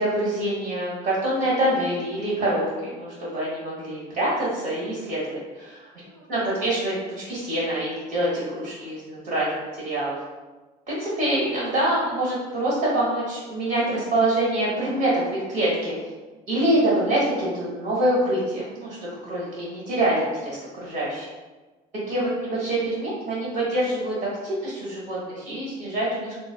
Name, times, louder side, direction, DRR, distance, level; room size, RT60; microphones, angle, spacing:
voice 1, 0.0-5.9 6.3-10.2 10.9-16.0 16.5-21.3 22.1-26.3, right 1 dB, 75° right, -7 dB, 1.3 m, -25 dB
5.1 x 2.0 x 2.2 m, 1.2 s
cardioid pair, 110°, 17 cm